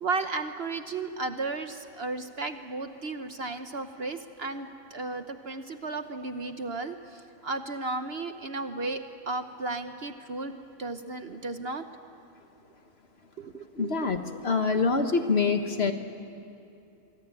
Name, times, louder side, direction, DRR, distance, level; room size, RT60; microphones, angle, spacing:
voice 1, 0.0-10.5 10.8-11.8 13.4-14.1, right 3 dB, 45° right, 8 dB, 1.1 m, -34 dB
voice 2, 13.7-15.9, left 4 dB, 45° left, 7 dB, 1.5 m, -25 dB
25.0 x 24.5 x 8.9 m, 2.7 s
omnidirectional pair, 1.5 m